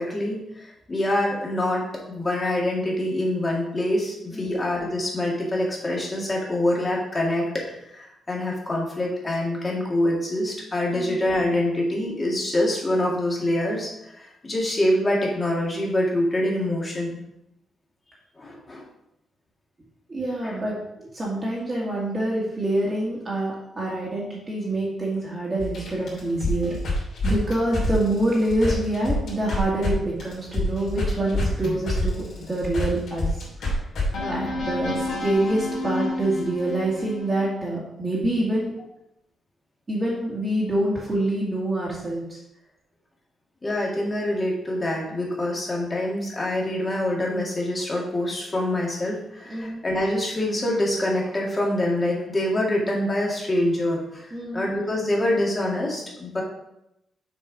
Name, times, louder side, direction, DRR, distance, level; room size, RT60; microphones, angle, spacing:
voice 1, 0.0-17.2 18.4-18.9 20.4-20.6 31.1-31.2 31.6-31.8 34.2-34.5 43.6-56.4, left 1 dB, 25° left, -2 dB, 2.0 m, -25 dB
voice 2, 20.1-26.8 27.2-33.4 34.3-38.7 39.9-42.4 49.5-49.8 54.3-54.6, right 1 dB, 25° right, -6 dB, 1.9 m, -26 dB
sound 1, 25.6-29.9 30.2-37.4, left 2 dB, 65° left, 2.9 m, -28 dB
6.8 x 4.5 x 5.1 m, 0.84 s
cardioid pair, 135°, 0 cm